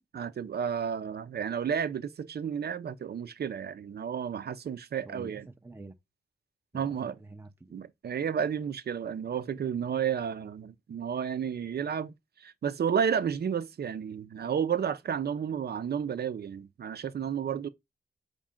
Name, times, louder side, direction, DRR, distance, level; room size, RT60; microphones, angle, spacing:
voice 1, 0.0-5.4 6.7-7.2 7.7-12.1 12.4-17.7, right 7 dB, 75° right, 0.8 m, -32 dB
voice 2, 5.0-5.9 6.7-7.7, right 2 dB, 15° right, 0.6 m, -48 dB
7.4 x 5.3 x 3.8 m
wide cardioid pair, 115°, 17 cm